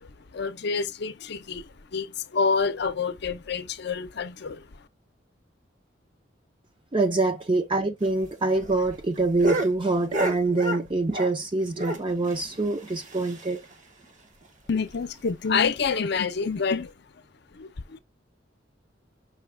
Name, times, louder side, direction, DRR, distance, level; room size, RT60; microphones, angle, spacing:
voice 1, 0.3-4.7 14.7-16.9 17.5-18.0, left 5 dB, 60° left, 0.6 m, -27 dB
voice 2, 6.9-13.6, right 3 dB, 25° right, 0.5 m, -25 dB
sound 1, 8.0-11.5 11.7-13.7 14.0-14.1 14.4-14.5 14.9-15.0 15.6-15.9 16.7-16.8, right 1 dB, 45° right, 1.0 m, -32 dB
5.6 x 2.3 x 3.3 m
head